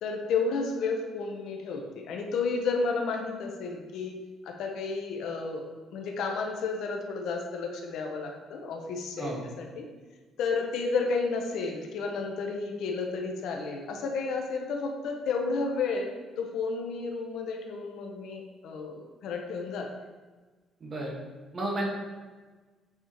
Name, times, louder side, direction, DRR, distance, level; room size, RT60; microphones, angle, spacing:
voice 1, 0.0-4.2 4.4-5.6 5.9-9.9 10.4-16.1 16.4-19.9, left 4 dB, 75° left, 2 dB, 0.8 m, -32 dB
voice 2, 20.8-21.1 21.5-21.8, right 1 dB, 35° right, -2 dB, 1.5 m, -32 dB
7.9 x 4.5 x 3.0 m, 1.3 s
cardioid pair, 110°, 0 cm